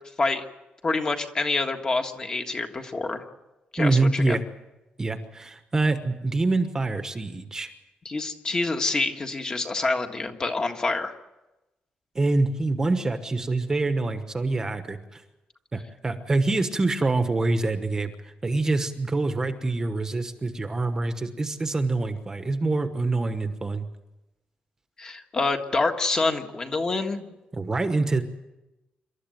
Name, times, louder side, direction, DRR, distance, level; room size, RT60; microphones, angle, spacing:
voice 1, 0.8-3.2 3.7-4.4 8.0-11.1 25.0-27.2, left 3 dB, 25° left, 5 dB, 1.6 m, -27 dB
voice 2, 3.8-4.4 5.0-7.7 12.1-15.2 15.7-23.9 27.5-28.2, right 3 dB, 20° right, 8 dB, 1.1 m, -25 dB
27.0 x 13.0 x 9.2 m, 0.99 s
wide cardioid pair, 180°, 3 cm